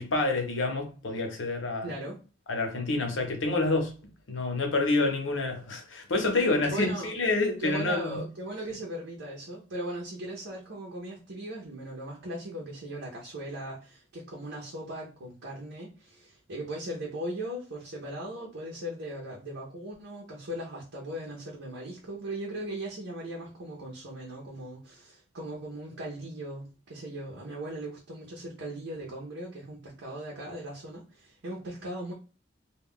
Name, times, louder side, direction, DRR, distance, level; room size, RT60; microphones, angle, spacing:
voice 1, 0.0-1.9 2.5-3.9 4.3-8.2, left 2 dB, 80° left, 0.8 m, -28 dB
voice 2, 1.8-2.2 6.6-7.1 7.6-32.1, right 1 dB, 70° right, 0.7 m, -38 dB
2.3 x 2.2 x 3.6 m
head